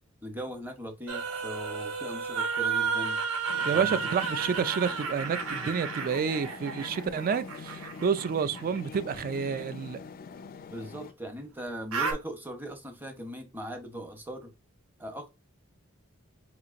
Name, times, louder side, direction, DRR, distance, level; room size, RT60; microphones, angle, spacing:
voice 1, 0.2-3.2 3.7-4.1 10.7-14.5 15.0-15.3, equal, 10° right, 0.8 m, -39 dB
sound 1, 1.1-9.0 11.9-12.1, right 5 dB, 75° right, 1.0 m, -32 dB
sound 2, 3.5-11.1, left 5 dB, 45° left, 0.4 m, -44 dB
voice 2, 3.6-10.0, right 6 dB, 40° right, 0.3 m, -29 dB
5.0 x 2.9 x 2.5 m
head